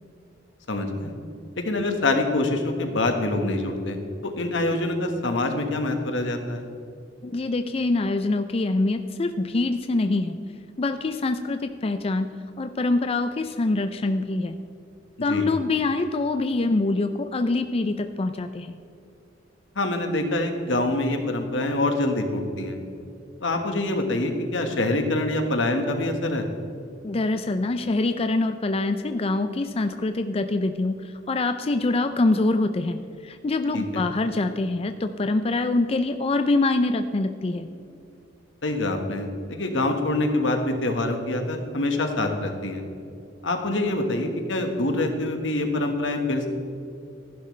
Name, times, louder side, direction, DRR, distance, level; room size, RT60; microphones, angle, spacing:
voice 1, 0.7-1.1 1.6-4.0 4.2-6.7 15.2-15.5 19.7-22.8 23.4-26.4 33.7-34.0 38.6-42.8 43.4-46.5, left 2 dB, 85° left, 4 dB, 1.5 m, -25 dB
voice 2, 7.2-10.4 10.8-12.3 12.6-14.6 15.2-18.8 27.0-31.0 31.3-37.7, left 2 dB, 30° left, 8 dB, 0.4 m, -24 dB
15.0 x 11.0 x 3.3 m, 2.6 s
head